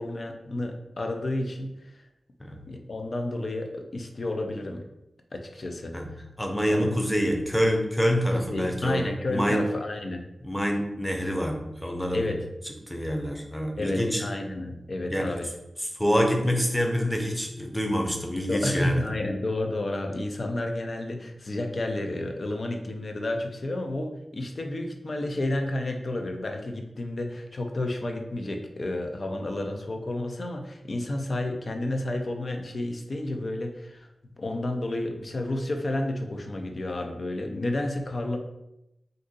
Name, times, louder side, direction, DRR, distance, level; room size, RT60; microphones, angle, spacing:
voice 1, 0.0-2.0 2.7-4.8 5.3-5.9 6.7-6.9 8.3-10.2 12.1-12.4 13.8-15.5 18.5-34.1 34.4-38.4, left 1 dB, 60° left, 3 dB, 0.5 m, -31 dB
voice 2, 6.4-9.0 9.3-9.6 10.4-12.3 12.9-14.2 15.1-15.3 16.0-19.0, equal, 5° left, 2 dB, 0.6 m, -26 dB
2.6 x 2.6 x 3.8 m, 0.89 s
cardioid pair, 50°, 0 cm